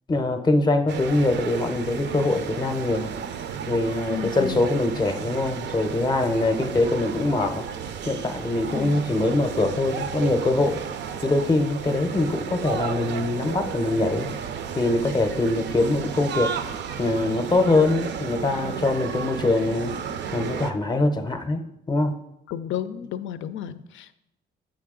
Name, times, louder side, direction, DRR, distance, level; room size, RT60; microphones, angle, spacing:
voice 1, 0.1-3.1 3.7-7.6 8.1-10.8 11.2-14.4 14.8-16.5 17.0-19.9 20.3-22.1, left 2 dB, 20° left, 8 dB, 0.6 m, -23 dB
sound 1, 0.9-20.7, right 7 dB, 65° right, 0.5 m, -33 dB
voice 2, 4.1-4.7 8.7-9.1 22.5-24.2, left 9 dB, 75° left, 13 dB, 0.4 m, -32 dB
7.5 x 4.6 x 3.7 m, 0.82 s
cardioid pair, 90°, 20 cm